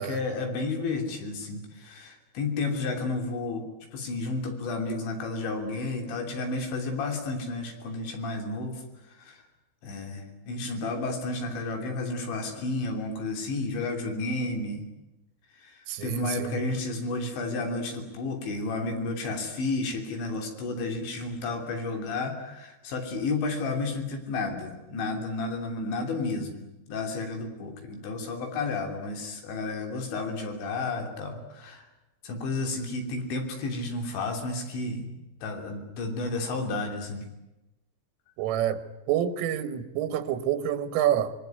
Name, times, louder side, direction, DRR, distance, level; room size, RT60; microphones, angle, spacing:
voice 1, 0.0-9.4 9.8-14.9 15.6-31.9 32.2-37.3, left 3 dB, 65° left, 4 dB, 5.2 m, -32 dB
voice 2, 15.9-16.6 38.4-38.8 39.1-41.3, right 10 dB, 85° right, 11 dB, 4.0 m, -27 dB
25.5 x 22.5 x 9.5 m, 0.99 s
omnidirectional pair, 5.6 m